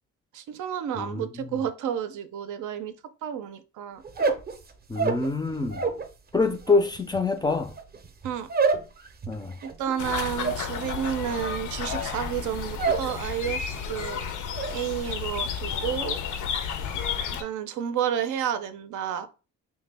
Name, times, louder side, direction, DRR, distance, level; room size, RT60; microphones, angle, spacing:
voice 1, 0.3-2.9 3.2-4.0 8.2-8.5 9.6-14.2 14.7-16.2 17.4-19.3, right 9 dB, 80° right, 0.5 m, -31 dB
voice 2, 1.0-1.6 4.9-5.8 6.3-7.7 9.3-9.5, left 3 dB, 15° left, 0.4 m, -26 dB
sound 1, 4.0-6.1 6.4-13.1 13.4-13.9 14.2-14.7, right 4 dB, 30° right, 0.6 m, -29 dB
sound 2, 10.0-17.4, left 7 dB, 80° left, 0.6 m, -32 dB
3.2 x 2.2 x 3.3 m
cardioid pair, 90°, 30 cm